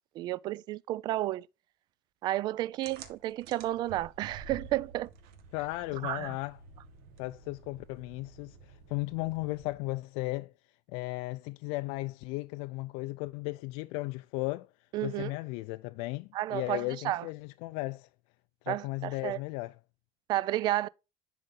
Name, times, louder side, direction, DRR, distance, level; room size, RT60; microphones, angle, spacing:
voice 1, 0.2-1.5 2.2-5.1 6.0-6.4 14.9-15.3 16.3-17.3 18.7-19.4 20.3-20.9, right 14 dB, 45° right, 0.4 m, -32 dB
sound 1, 2.8-10.0, right 5 dB, 90° right, 1.4 m, -51 dB
voice 2, 5.5-6.6 7.2-10.5 10.9-14.7 15.0-18.1 18.6-19.7, left 21 dB, 85° left, 0.4 m, -35 dB
10.5 x 3.8 x 3.8 m
cardioid pair, 160°, 10 cm